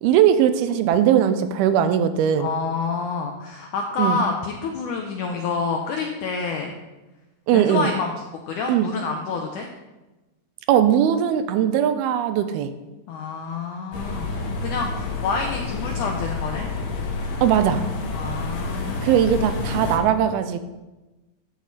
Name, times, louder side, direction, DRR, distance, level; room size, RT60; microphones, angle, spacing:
voice 1, 0.0-2.5 4.0-4.2 7.5-7.9 8.7-8.9 10.7-12.7 17.4-17.8 19.0-20.6, right 9 dB, 80° right, 10 dB, 2.5 m, -19 dB
voice 2, 2.4-6.7 7.5-8.1 8.5-9.7 13.1-16.7 18.1-19.2, left 4 dB, 80° left, 2 dB, 1.8 m, -28 dB
sound 1, 13.9-20.0, left 3 dB, 60° left, 2.7 m, -29 dB
14.0 x 8.1 x 4.1 m, 1.1 s
omnidirectional pair, 4.6 m